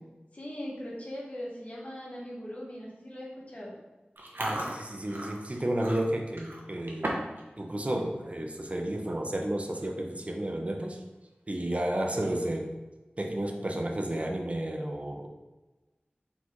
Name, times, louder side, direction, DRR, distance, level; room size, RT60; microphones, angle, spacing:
voice 1, 0.3-3.7, equal, 40° left, -5 dB, 1.1 m, -40 dB
Chewing mastication, 4.2-7.4 7.7-8.0 8.5-8.7 9.4-9.5 9.8-10.1 10.5-10.6 12.1-12.6, right 1 dB, 70° right, 0.7 m, -37 dB
voice 2, 4.4-7.1 7.6-11.0 11.5-12.7 13.2-15.3, right 1 dB, 35° right, 2 dB, 0.6 m, -32 dB
4.3 x 3.4 x 3.0 m, 1.1 s
wide cardioid pair, 50°, 4 cm